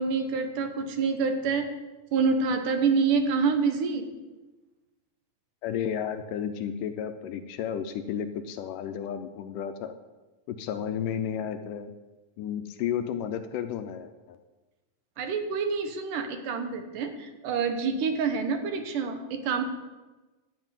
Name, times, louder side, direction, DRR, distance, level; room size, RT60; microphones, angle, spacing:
voice 1, 0.0-1.7 2.1-4.1 15.2-19.6, right 5 dB, 70° right, 6 dB, 2.5 m, -27 dB
voice 2, 5.6-9.9 10.5-11.9 12.4-14.4, left 8 dB, 75° left, 8 dB, 2.1 m, -32 dB
12.5 x 6.0 x 9.0 m, 1.2 s
omnidirectional pair, 4.1 m